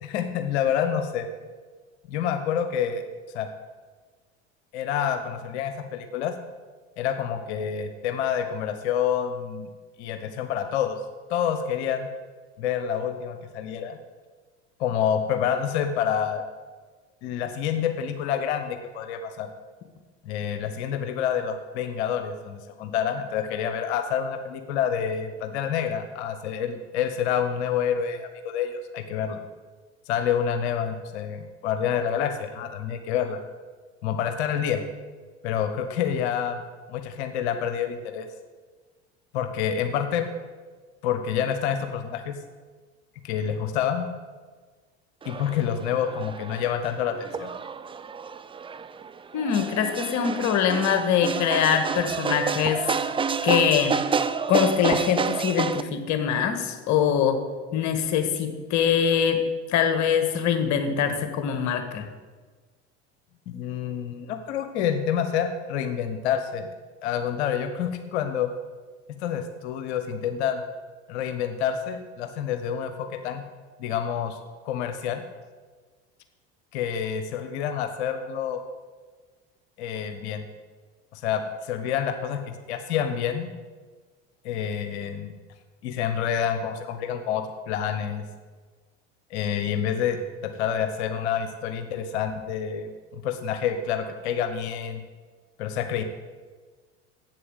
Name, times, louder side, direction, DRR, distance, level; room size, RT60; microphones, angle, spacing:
voice 1, 0.0-1.3 2.1-3.0 3.3-3.5 4.7-6.3 7.0-9.7 10.0-11.0 11.3-12.1 12.6-14.0 14.8-16.4 17.2-19.5 20.2-29.4 30.1-33.4 34.0-34.8 35.4-36.6 36.9-38.3 39.3-40.3 41.0-42.4 43.2-44.1 45.2-47.5 63.5-66.7 67.0-68.5 69.1-70.6 71.1-73.4 73.8-75.2 76.7-78.6 79.8-80.5 81.1-83.5 84.4-85.3 85.8-88.2 89.3-95.0 95.6-96.0, left 8 dB, 70° left, 8 dB, 1.1 m, -28 dB
sound 1, 45.2-55.8, right 6 dB, 15° right, 0.4 m, -29 dB
voice 2, 49.3-52.8 53.4-53.9 54.5-57.4 57.7-59.4 59.7-62.1, left 8 dB, 55° left, 7 dB, 1.6 m, -23 dB
8.2 x 7.7 x 8.1 m, 1.4 s
hypercardioid pair, 75°, 34 cm